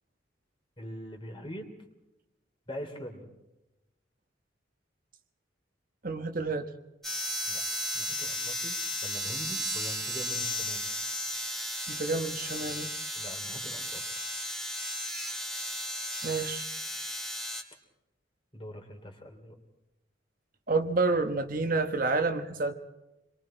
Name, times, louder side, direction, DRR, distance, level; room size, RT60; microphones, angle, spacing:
voice 1, 0.8-1.7 2.7-3.3 7.4-7.6 7.9-8.7 9.0-10.9 13.1-14.1 18.5-19.5, equal, 30° left, 4 dB, 3.2 m, -43 dB
voice 2, 6.0-6.7 11.9-12.9 16.2-16.7 20.7-22.7, right 3 dB, 50° right, 7 dB, 1.2 m, -29 dB
sound 1, 7.0-17.6, equal, ahead, 2.3 m, -34 dB
28.0 x 22.5 x 4.4 m, 0.97 s
head